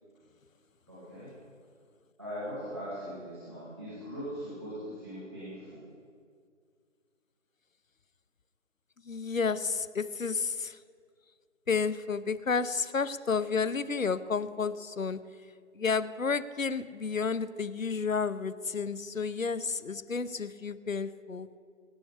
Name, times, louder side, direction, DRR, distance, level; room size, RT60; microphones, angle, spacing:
voice 1, 0.9-1.3 2.2-5.8, equal, 20° right, -13 dB, 2.9 m, -40 dB
voice 2, 9.0-10.8 11.7-15.2 15.7-21.5, left 5 dB, 85° left, 15 dB, 0.9 m, -31 dB
24.5 x 8.2 x 3.4 m, 2.1 s
figure-of-eight pair, 180°, 39 cm